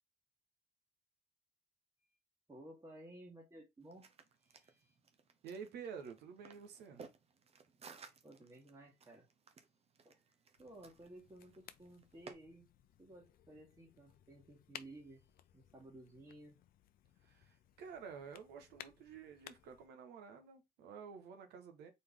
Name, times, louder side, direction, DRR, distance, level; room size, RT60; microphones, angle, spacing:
voice 1, 2.5-4.1 4.4-4.9 8.2-9.3 10.0-10.2 10.6-12.7 13.0-16.6 17.2-17.6, right 1 dB, 20° right, 1.6 m, -56 dB
sound 1, 3.8-12.3, right 5 dB, 35° right, 0.9 m, -59 dB
voice 2, 5.4-7.0 17.2-21.9, right 6 dB, 80° right, 1.3 m, -50 dB
sound 2, 10.5-19.9, left 11 dB, 60° left, 0.5 m, -59 dB
4.2 x 3.3 x 3.7 m
cardioid pair, 110°, 17 cm